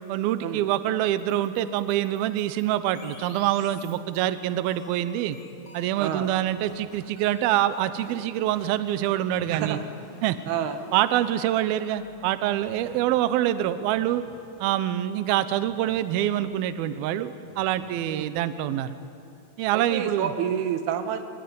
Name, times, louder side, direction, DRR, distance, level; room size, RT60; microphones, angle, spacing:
voice 1, 0.1-5.4 5.7-9.8 10.2-10.4 10.9-14.2 14.6-19.0 19.6-20.3, right 12 dB, 90° right, 13 dB, 2.1 m, -25 dB
sound 1, 1.2-4.3 4.7-11.6 12.0-13.1 13.9-15.0 15.6-16.7 17.4-18.5, left 2 dB, 35° left, 4.5 m, -51 dB
voice 2, 6.0-6.3 9.5-9.8 10.5-10.8 18.1-18.3 19.7-21.2, right 8 dB, 65° right, 8 dB, 3.1 m, -29 dB
25.0 x 21.0 x 9.6 m, 2.5 s
omnidirectional pair, 5.5 m